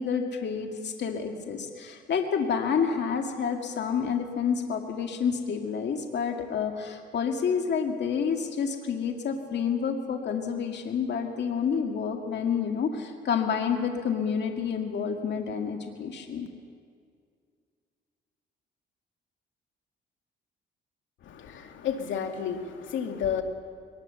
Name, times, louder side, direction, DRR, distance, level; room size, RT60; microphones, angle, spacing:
voice 1, 0.0-16.5, left 6 dB, 60° left, 3 dB, 2.1 m, -29 dB
voice 2, 21.2-23.4, left 8 dB, 75° left, 4 dB, 2.3 m, -31 dB
22.5 x 19.5 x 6.9 m, 2.1 s
cardioid pair, 90°, 20 cm